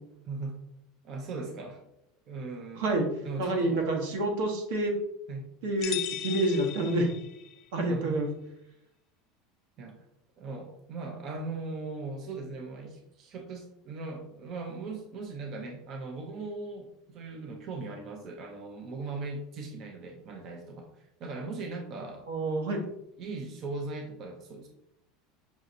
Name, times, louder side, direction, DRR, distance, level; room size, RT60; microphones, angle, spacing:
voice 1, 0.2-0.6 1.0-1.8 2.3-2.9 3.2-4.2 5.3-5.5 7.9-8.2 9.8-10.1 10.4-22.3 22.7-22.8 23.2-24.7, right 3 dB, 35° right, 2 dB, 0.4 m, -39 dB
voice 2, 3.4-4.9 5.6-6.0 6.2-7.1 7.7-8.3 22.3-22.8, right 2 dB, 80° right, 2 dB, 1.0 m, -28 dB
sound 1, 5.8-7.6, left 11 dB, 35° left, 0.3 m, -37 dB
5.8 x 2.7 x 2.5 m, 0.82 s
cardioid pair, 175°, 0 cm